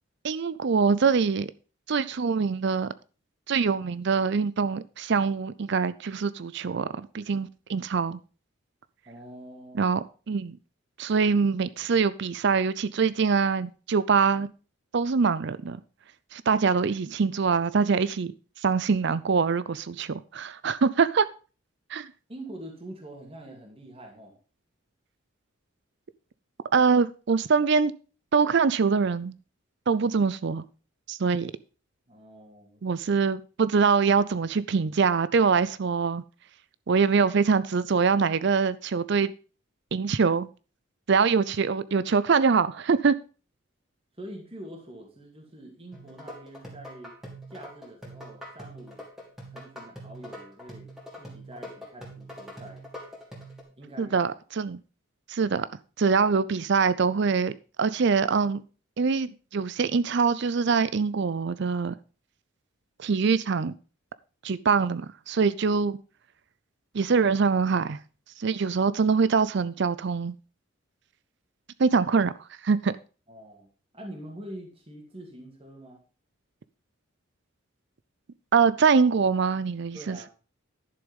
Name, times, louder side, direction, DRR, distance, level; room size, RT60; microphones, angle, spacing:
voice 1, 0.2-1.5 1.9-2.9 3.5-8.2 9.8-10.6 11.0-14.5 14.9-15.8 16.3-18.3 18.6-21.3 21.9-22.1 26.7-27.9 28.3-29.3 29.9-30.6 31.1-31.5 32.8-36.2 36.9-39.3 39.9-40.5 41.1-43.2 54.0-54.8 55.3-55.7 56.0-57.5 57.8-58.6 59.0-61.9 63.0-63.7 64.4-66.0 66.9-68.0 68.4-70.3 71.8-72.3 72.6-72.9 78.5-80.3, right 5 dB, 55° right, 0.5 m, -24 dB
voice 2, 9.1-9.8 22.3-24.3 32.1-32.8 44.2-47.1 47.5-49.0 49.5-50.9 51.2-52.8 53.8-54.2 73.3-73.7 73.9-76.0 79.9-80.3, right 1 dB, 25° right, 2.6 m, -44 dB
sound 1, 45.9-53.6, equal, ahead, 3.0 m, -44 dB
11.0 x 6.9 x 5.3 m
head